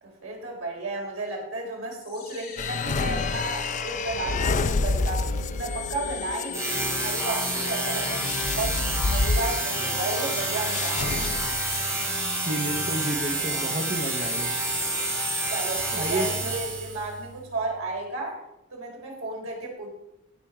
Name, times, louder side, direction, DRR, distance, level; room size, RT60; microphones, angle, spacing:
voice 1, 0.0-5.3 5.6-11.3 15.5-18.4 18.7-19.9, right 2 dB, 75° right, -1 dB, 3.6 m, -33 dB
sound 1, 2.0-18.0, equal, 70° left, 2.2 m, -42 dB
sound 2, 2.6-11.8, left 4 dB, 35° left, 0.4 m, -29 dB
sound 3, 6.5-17.1, right 2 dB, 15° right, 2.2 m, -29 dB
voice 2, 12.4-14.6 15.9-16.3, right 1 dB, 35° right, 2 dB, 0.8 m, -30 dB
16.5 x 6.0 x 4.8 m, 0.87 s
head